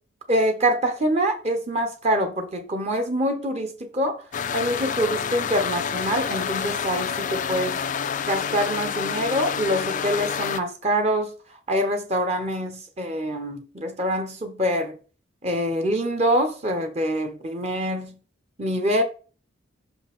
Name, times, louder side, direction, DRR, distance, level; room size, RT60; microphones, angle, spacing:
voice 1, 0.3-4.2 4.5-7.8 8.3-11.3 11.7-15.0 15.4-18.2 18.6-19.0, equal, 30° right, 0.8 m, -25 dB
sound 1, 4.3-10.6, left 7 dB, 35° left, 0.3 m, -28 dB
5.9 x 5.0 x 3.5 m
head